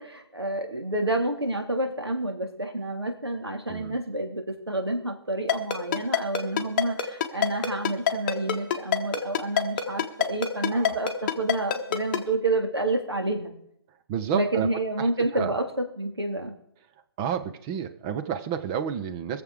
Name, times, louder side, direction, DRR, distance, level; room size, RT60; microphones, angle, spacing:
voice 1, 0.0-13.5 14.3-15.7 16.0-16.5, right 2 dB, 75° right, 4 dB, 3.0 m, -29 dB
Ringtone, 5.5-12.2, left 9 dB, 20° left, 1.0 m, -24 dB
voice 2, 14.1-14.7 15.0-15.6 17.2-19.4, right 8 dB, 10° right, 10 dB, 0.4 m, -30 dB
21.5 x 7.4 x 4.8 m, 0.72 s
figure-of-eight pair, 145°, 14 cm